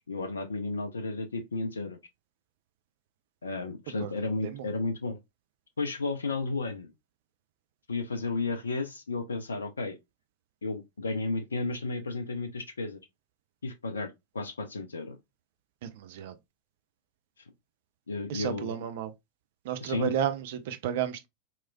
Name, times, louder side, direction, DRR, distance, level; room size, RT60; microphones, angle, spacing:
voice 1, 0.0-2.0 3.4-5.2 5.8-6.9 7.9-10.0 10.6-13.0 13.6-15.2 18.1-18.7 19.8-20.2, left 3 dB, 75° left, 0.4 m, -33 dB
voice 2, 15.8-16.4 18.3-19.1 19.6-21.3, right 10 dB, 50° right, 0.4 m, -32 dB
3.0 x 2.9 x 2.2 m
figure-of-eight pair, 90°, 0 cm